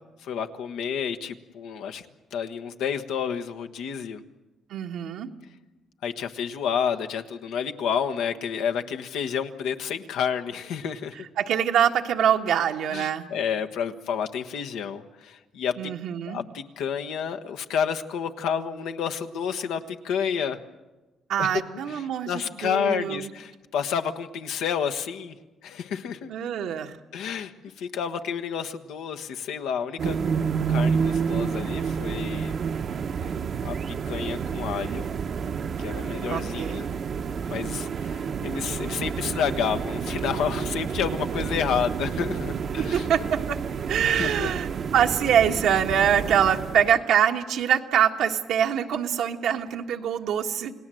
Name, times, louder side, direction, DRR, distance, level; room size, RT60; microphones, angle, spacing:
voice 1, 0.2-2.0 2.3-4.2 6.0-11.2 12.9-15.9 16.2-20.6 21.4-21.5 21.9-25.3 25.6-26.3 27.1-30.2 30.7-32.5 33.6-33.7 34.0-35.1 35.8-36.9 37.5-43.1 44.0-44.5, left 7 dB, 90° left, 7 dB, 1.2 m, -30 dB
voice 2, 4.7-5.3 11.4-13.3 15.8-16.4 21.3-23.3 26.3-26.9 36.3-36.9 42.8-43.6 43.9-44.7 44.9-50.7, right 9 dB, 80° right, 3 dB, 1.5 m, -24 dB
sound 1, 30.0-47.0, right 6 dB, 55° right, 1.0 m, -29 dB
29.0 x 18.5 x 7.7 m, 1.1 s
cardioid pair, 90°, 0 cm